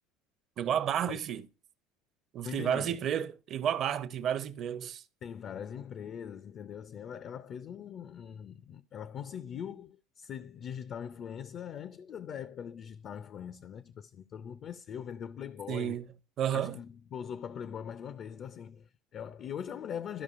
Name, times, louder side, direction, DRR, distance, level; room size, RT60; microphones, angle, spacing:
voice 1, 0.6-1.4 2.3-5.0 15.7-16.0 16.4-16.8, right 9 dB, 45° right, 0.7 m, -31 dB
voice 2, 2.4-3.0 5.2-16.0 16.5-20.2, left 8 dB, 45° left, 0.4 m, -41 dB
13.5 x 5.2 x 2.5 m
supercardioid pair, 110°, 0 cm